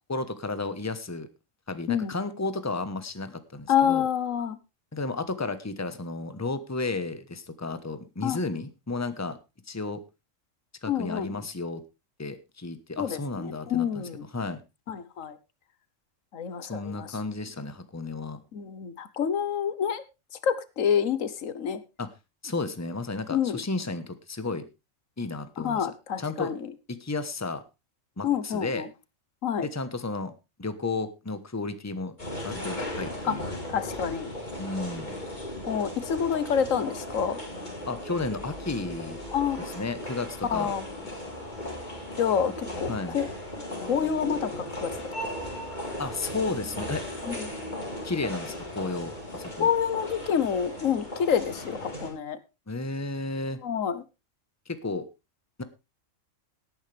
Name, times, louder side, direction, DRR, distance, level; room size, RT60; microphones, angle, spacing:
voice 1, 0.1-1.3 1.7-4.0 4.9-9.4 9.7-10.0 10.8-11.8 12.2-14.6 16.7-18.4 22.0-22.1 22.4-24.6 25.2-25.9 26.2-26.5 27.0-27.6 28.2-28.8 29.6-30.3 30.6-32.1 32.4-33.5 34.6-35.1 37.9-39.2 39.7-40.7 42.4-43.2 46.0-47.0 48.0-49.7 52.7-53.6 54.7-55.0 55.6-55.7, left 3 dB, 15° left, 11 dB, 1.0 m, -33 dB
voice 2, 3.7-4.6 8.2-8.4 10.9-11.3 13.0-14.2 14.9-15.4 16.3-17.1 18.5-20.0 20.4-21.8 23.3-23.6 25.6-26.6 28.2-28.9 29.4-29.7 33.2-33.4 33.7-34.3 35.7-37.4 39.3-39.6 40.5-40.9 42.2-43.3 43.8-44.9 47.3-47.4 49.6-52.4 53.6-54.0, left 8 dB, 90° left, 14 dB, 1.4 m, -27 dB
sound 1, 32.2-52.1, left 1 dB, 35° left, 4.3 m, -37 dB
18.0 x 9.6 x 3.4 m, 0.26 s
omnidirectional pair, 1.3 m